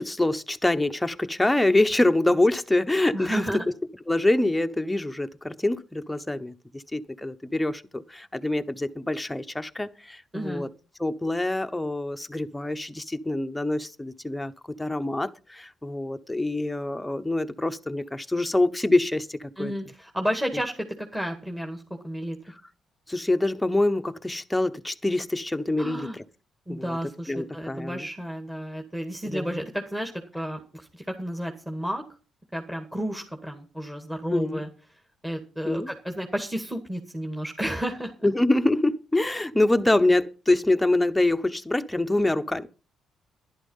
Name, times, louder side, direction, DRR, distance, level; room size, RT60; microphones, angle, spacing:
voice 1, 0.0-3.4 4.1-10.7 11.0-14.5 14.8-19.7 23.1-26.2 26.7-27.0 27.3-28.1 29.2-29.6 34.3-34.6 35.6-35.9 38.2-42.7, left 2 dB, 10° left, 1.0 m, -25 dB
voice 2, 3.1-3.7 10.3-10.6 19.6-22.4 25.8-26.2 26.7-32.0 32.5-34.7 35.2-38.3, equal, 10° right, 2.1 m, -32 dB
11.5 x 11.0 x 5.6 m
cardioid pair, 90°, 0 cm